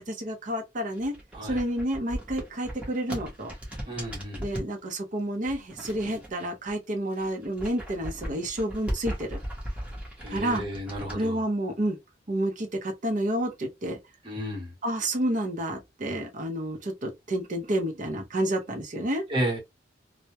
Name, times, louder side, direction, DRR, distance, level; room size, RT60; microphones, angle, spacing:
voice 1, 0.0-1.1 1.4-3.5 4.4-9.4 10.3-10.6 11.1-12.0 12.3-14.0 14.8-19.3, right 1 dB, 45° right, 0.6 m, -30 dB
sound 1, 0.9-4.7 5.4-6.8 7.1-11.2, equal, 5° right, 0.8 m, -37 dB
voice 2, 3.9-4.5 10.2-11.4 14.2-14.7 19.3-19.6, right 1 dB, 30° right, 1.0 m, -32 dB
2.2 x 2.1 x 2.7 m
head